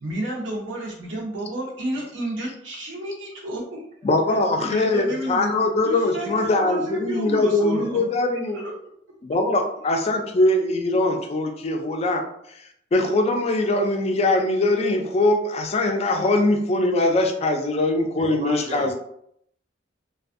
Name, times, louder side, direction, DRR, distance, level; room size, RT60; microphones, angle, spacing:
voice 1, 0.0-3.8 4.6-5.4 5.8-8.0 8.5-8.7, right 1 dB, 85° right, -2 dB, 0.7 m, -31 dB
voice 2, 4.0-8.6 9.2-12.6 12.9-18.9, left 2 dB, 35° left, 4 dB, 0.3 m, -22 dB
voice 3, 18.2-18.9, right 2 dB, 40° right, 2 dB, 0.4 m, -32 dB
2.5 x 2.3 x 2.5 m, 0.72 s
head